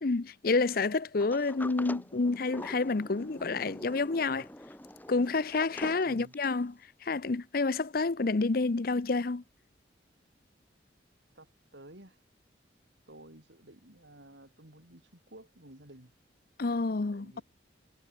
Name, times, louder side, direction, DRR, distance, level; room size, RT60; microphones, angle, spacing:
voice 1, 0.0-4.5 5.1-6.7 7.0-9.4 16.6-17.4, left 3 dB, 50° left, 0.6 m, -29 dB
Sliding door, 1.2-6.6, left 1 dB, 10° left, 2.4 m, -45 dB
voice 2, 6.0-6.3 11.3-12.2 13.1-16.1 17.1-17.4, right 1 dB, 70° right, 4.7 m, -53 dB
head